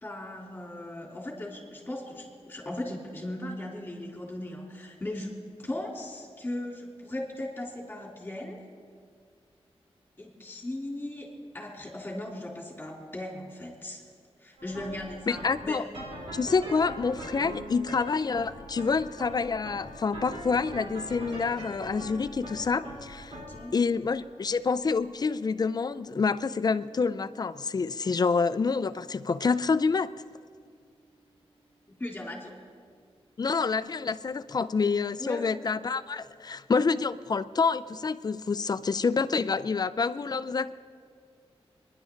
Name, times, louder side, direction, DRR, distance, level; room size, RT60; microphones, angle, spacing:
voice 1, 0.0-8.6 10.2-14.0 14.4-15.8 23.3-23.8 31.9-32.6 35.2-35.6, left 1 dB, 15° left, -2 dB, 3.6 m, -38 dB
sound 1, 14.6-31.8, equal, 60° right, 4.2 m, -44 dB
voice 2, 15.3-15.8 16.3-23.4 23.7-30.1 33.4-40.7, left 4 dB, 40° left, 14 dB, 0.5 m, -27 dB
28.0 x 11.0 x 4.0 m, 2.1 s
wide cardioid pair, 130°, 10 cm